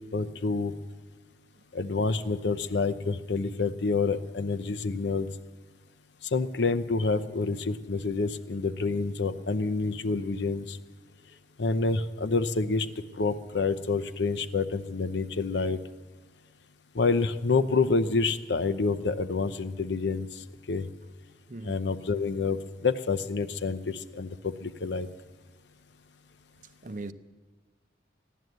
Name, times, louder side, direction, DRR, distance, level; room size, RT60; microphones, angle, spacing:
voice 1, 0.1-0.7 1.7-5.3 6.3-10.8 11.6-12.9 13.2-15.8 16.9-20.3 20.7-20.8 21.6-22.6 22.8-25.1, left 4 dB, 75° left, 0.7 m, -28 dB
voice 2, 21.5-21.7 26.8-27.1, right 2 dB, 45° right, 0.6 m, -38 dB
15.5 x 11.0 x 7.9 m
head